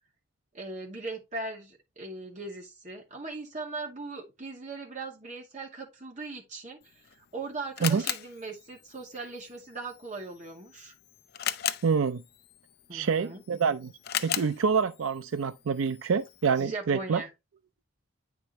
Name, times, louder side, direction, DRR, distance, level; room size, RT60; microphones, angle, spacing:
voice 1, 0.5-6.8 7.2-10.9 12.9-13.4 16.6-17.3, right 3 dB, 35° right, 2.2 m, -39 dB
Camera, 6.8-16.7, left 11 dB, 50° left, 0.4 m, -39 dB
voice 2, 11.8-12.2 12.9-13.9 14.2-17.2, right 5 dB, 85° right, 0.4 m, -27 dB
8.8 x 4.9 x 3.0 m
head